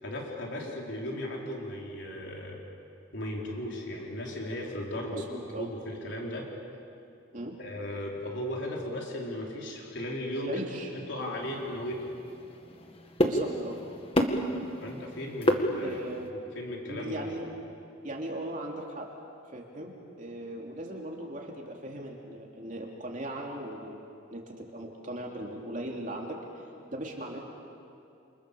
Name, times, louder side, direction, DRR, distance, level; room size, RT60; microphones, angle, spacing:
voice 1, 0.0-2.6 3.1-5.2 5.6-6.5 7.6-10.5 11.1-12.1 14.8-16.0 16.5-17.3, left 1 dB, 60° left, -2 dB, 4.9 m, -36 dB
voice 2, 5.1-5.7 7.3-7.6 10.4-10.9 13.2-13.8 15.8-16.3 16.9-17.5 18.0-19.1 19.5-19.9 20.2-24.0 24.3-27.4, right 1 dB, 40° right, -1 dB, 3.1 m, -38 dB
sound 1, 11.2-16.3, equal, 30° left, 1.9 m, -31 dB
29.0 x 28.5 x 7.1 m, 2.6 s
head